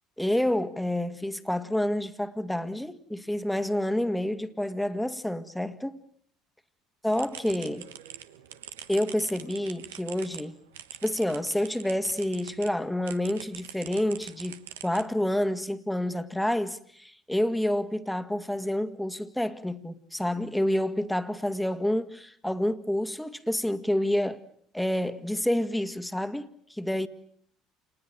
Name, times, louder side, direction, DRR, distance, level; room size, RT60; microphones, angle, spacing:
voice 1, 0.2-6.0 7.0-7.9 8.9-10.6 11.0-24.4 24.7-27.1, left 1 dB, 5° left, 2.0 m, -28 dB
sound 1, 7.1-12.7 13.0-15.4, right 10 dB, 80° right, 1.4 m, -44 dB
29.0 x 20.5 x 9.1 m
hypercardioid pair, 65°, 0 cm